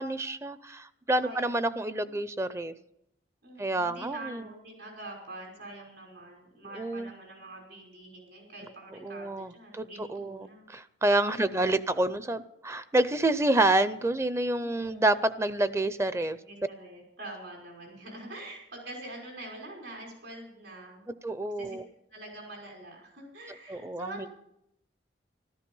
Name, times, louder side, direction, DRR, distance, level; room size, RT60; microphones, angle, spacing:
voice 1, 0.0-2.7 3.6-4.4 6.8-7.1 9.0-16.4 21.2-21.8 23.7-24.3, right 2 dB, 15° right, 14 dB, 0.5 m, -28 dB
voice 2, 1.2-2.1 3.4-10.7 11.4-12.0 14.6-15.2 16.4-21.1 21.4-21.8 22.1-24.3, right 1 dB, 75° right, 0 dB, 5.4 m, -45 dB
14.0 x 13.0 x 5.4 m, 0.77 s
head